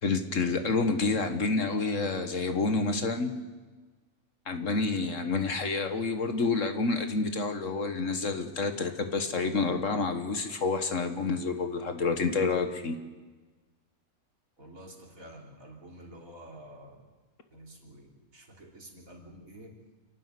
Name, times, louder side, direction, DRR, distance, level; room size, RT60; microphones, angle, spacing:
voice 1, 0.0-3.3 4.5-13.0, left 4 dB, 60° left, 7 dB, 1.7 m, -28 dB
voice 2, 14.6-17.1 17.5-19.7, right 1 dB, 65° right, 0 dB, 3.9 m, -49 dB
28.0 x 12.0 x 9.6 m, 1.3 s
omnidirectional pair, 1.6 m